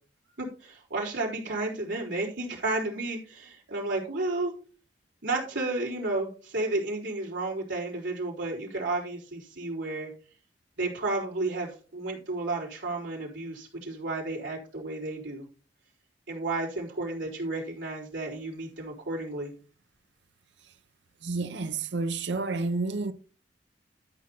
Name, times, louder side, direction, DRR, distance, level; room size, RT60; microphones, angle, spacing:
voice 1, 0.4-4.5 5.2-10.1 10.8-15.5 16.3-19.5, right 2 dB, 80° right, 4.1 m, -32 dB
voice 2, 21.2-23.1, right 3 dB, 65° right, 0.7 m, -30 dB
13.0 x 6.2 x 4.2 m
head